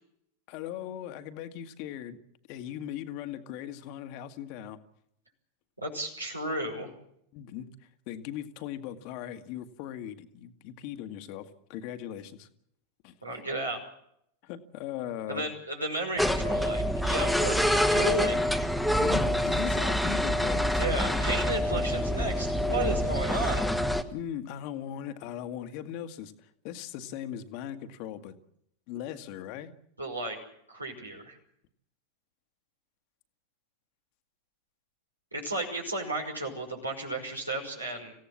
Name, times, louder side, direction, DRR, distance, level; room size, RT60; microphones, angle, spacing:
voice 1, 0.5-2.2 2.5-4.8 7.3-7.7 8.1-12.5 13.0-13.1 14.4-15.5 19.0-20.8 24.1-28.4 28.9-29.7, left 10 dB, 45° left, 9 dB, 1.7 m, -39 dB
voice 2, 5.8-6.9 13.2-13.8 15.3-18.4 20.8-23.7 30.0-30.4 30.7-31.4 35.3-38.1, right 2 dB, 85° right, 1 dB, 5.5 m, -33 dB
sound 1, 16.2-24.0, equal, ahead, 1.5 m, -26 dB
26.0 x 16.5 x 7.4 m, 0.74 s
figure-of-eight pair, 90°, 0 cm